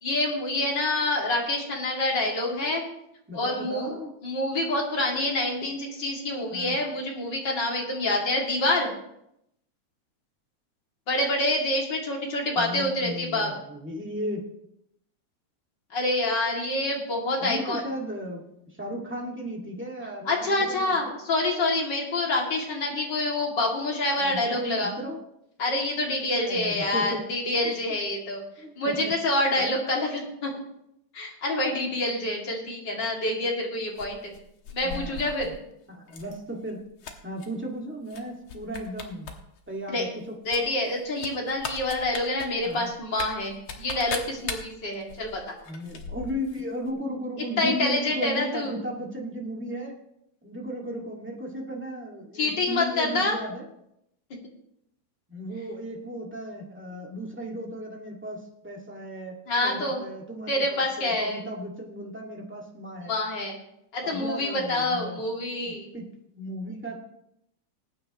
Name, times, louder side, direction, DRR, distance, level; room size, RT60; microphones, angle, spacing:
voice 1, 0.0-2.8 3.3-3.9 4.2-8.9 11.1-13.5 15.9-17.8 20.3-24.9 25.6-28.4 28.8-30.5 31.1-34.3 34.7-35.5 39.9-40.1 40.5-45.4 47.6-48.7 52.3-53.4 59.5-60.0 60.5-61.4 63.0-63.6 63.9-65.9, left 2 dB, 40° left, -1 dB, 2.9 m, -27 dB
voice 2, 3.3-4.1 6.5-6.8 12.5-14.5 17.4-18.4 18.7-21.2 24.2-25.2 26.3-27.2 28.6-29.1 29.6-29.8 34.8-35.5 35.9-36.8 37.2-39.3 39.7-40.3 42.6-42.9 45.7-49.9 50.4-53.7 55.3-63.1 64.0-65.2 65.6-66.1 66.3-67.0, equal, 5° right, -2 dB, 1.2 m, -35 dB
sound 1, 33.9-35.5 36.1-36.3 36.7-37.5 38.1-38.2 38.5-39.4 39.7-39.8 40.5-46.6 46.9-47.0, left 5 dB, 55° left, 1.7 m, -38 dB
20.0 x 9.2 x 3.0 m, 0.78 s
omnidirectional pair, 3.4 m